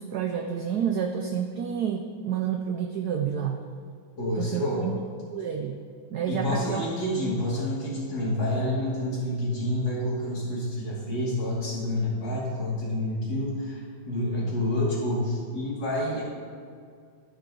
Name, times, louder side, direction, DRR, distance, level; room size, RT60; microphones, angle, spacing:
voice 1, 0.0-3.6 4.4-5.0 5.3-5.8 6.1-6.8, right 8 dB, 75° right, 4 dB, 0.9 m, -29 dB
voice 2, 4.2-4.9 6.3-16.2, left 1 dB, 70° left, -8 dB, 3.4 m, -28 dB
12.5 x 5.6 x 3.8 m, 2.2 s
omnidirectional pair, 2.2 m